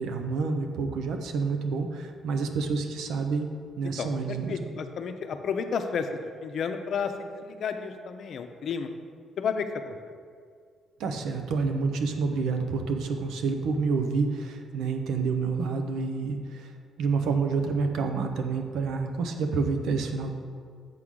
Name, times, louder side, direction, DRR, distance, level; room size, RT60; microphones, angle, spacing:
voice 1, 0.0-3.5 3.8-4.7 11.0-16.7 17.0-20.3, right 4 dB, 85° right, 5 dB, 0.7 m, -28 dB
voice 2, 4.0-8.9 9.4-10.0, left 6 dB, 60° left, 7 dB, 0.6 m, -32 dB
7.6 x 3.7 x 6.2 m, 2.1 s
cardioid pair, 90°, 0 cm